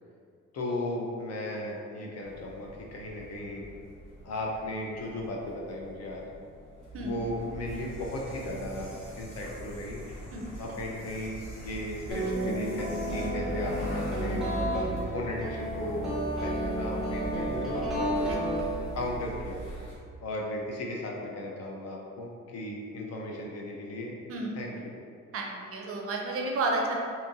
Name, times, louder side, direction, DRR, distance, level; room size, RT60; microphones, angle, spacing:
voice 1, 0.5-3.6 4.2-6.2 7.0-10.0 10.6-14.5 15.1-18.2 18.9-19.6 20.2-24.1 24.5-24.9, left 1 dB, 55° left, -2 dB, 0.6 m, -36 dB
sound 1, 2.3-19.9, right 1 dB, 80° left, 1.4 m, -40 dB
sound 2, 12.1-19.2, right 1 dB, ahead, 0.8 m, -32 dB
voice 2, 25.3-26.9, right 2 dB, 50° right, 0 dB, 0.5 m, -31 dB
2.8 x 2.5 x 2.7 m, 2.3 s
cardioid pair, 90°, 30 cm